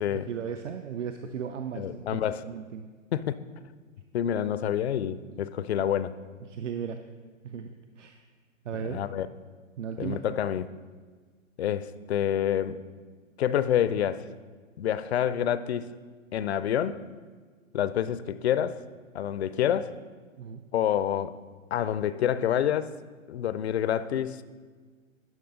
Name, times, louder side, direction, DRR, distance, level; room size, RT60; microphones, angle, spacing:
voice 1, 0.0-2.9 6.4-7.0 7.4-8.2 8.6-9.0 9.8-10.3 20.4-20.6, right 7 dB, 65° right, 7 dB, 0.5 m, -36 dB
voice 2, 1.7-2.4 3.1-3.3 4.1-6.1 8.9-9.3 10.0-10.7 11.6-12.8 13.4-14.3 14.8-15.9 16.3-17.0 17.7-18.8 19.1-19.9 20.7-21.4 21.7-22.9 23.3-24.4, left 10 dB, 55° left, 15 dB, 0.4 m, -27 dB
11.0 x 5.5 x 3.8 m, 1.5 s
hypercardioid pair, 145°, 40 cm